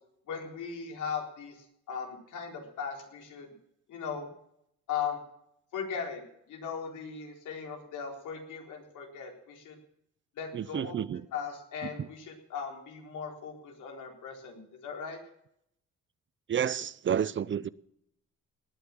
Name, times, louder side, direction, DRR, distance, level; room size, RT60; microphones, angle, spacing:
voice 1, 0.3-3.5 3.9-4.3 4.9-5.2 5.7-9.7 10.4-11.0 11.3-15.2, left 6 dB, 80° left, 4.2 m, -38 dB
voice 2, 10.5-11.2 12.0-12.1 16.5-17.7, right 8 dB, 40° right, 0.6 m, -30 dB
18.5 x 9.5 x 7.4 m
cardioid pair, 90°, 30 cm